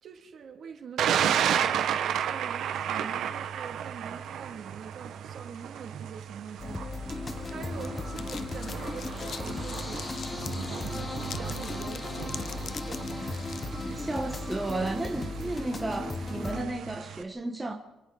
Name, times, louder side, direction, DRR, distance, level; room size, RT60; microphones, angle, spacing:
voice 1, 0.0-6.8 7.4-10.0 10.9-12.4 12.8-13.4, right 6 dB, 50° right, 2.4 m, -44 dB
Thunder, 1.0-17.2, right 9 dB, 65° right, 1.3 m, -33 dB
sound 1, 6.6-16.6, left 3 dB, 20° left, 1.1 m, -36 dB
sound 2, 7.1-13.7, left 7 dB, 45° left, 0.7 m, -45 dB
voice 2, 13.7-17.7, right 2 dB, 10° right, 1.3 m, -33 dB
28.0 x 27.0 x 4.1 m
cardioid pair, 175°, 0 cm